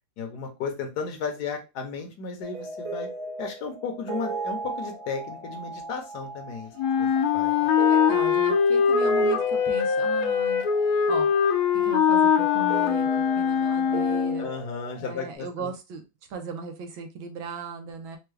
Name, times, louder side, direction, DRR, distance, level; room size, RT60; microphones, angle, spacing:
voice 1, 0.2-3.1 3.4-7.1 7.3-7.7 14.4-15.7, left 5 dB, 60° left, 3 dB, 1.3 m, -34 dB
sound 1, 2.4-15.3, right 2 dB, 55° right, 1.3 m, -37 dB
Wind instrument woodwind instrument, 6.8-14.5, left 7 dB, 85° left, 1.5 m, -22 dB
voice 2, 7.8-10.6 11.1-11.3 11.7-14.5 15.0-16.0 16.3-18.2, right 5 dB, 75° right, 4 dB, 1.5 m, -37 dB
4.6 x 2.3 x 3.2 m, 0.27 s
omnidirectional pair, 2.3 m